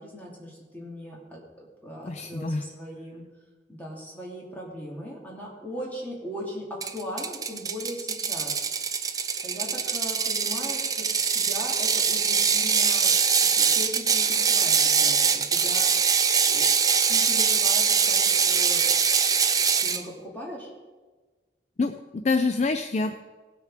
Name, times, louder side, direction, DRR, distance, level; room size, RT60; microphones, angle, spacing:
voice 1, 0.0-3.2 3.7-8.6 9.0-13.1 13.5-15.9 16.5-16.7 17.1-18.9 19.8-20.7, left 1 dB, 10° left, -3 dB, 2.7 m, -39 dB
voice 2, 2.1-2.6 21.8-23.1, left 3 dB, 40° left, 8 dB, 0.4 m, -26 dB
Ratchet pawl, 6.8-20.0, right 6 dB, 20° right, 0.5 m, -23 dB
18.0 x 6.6 x 4.9 m, 1.3 s
head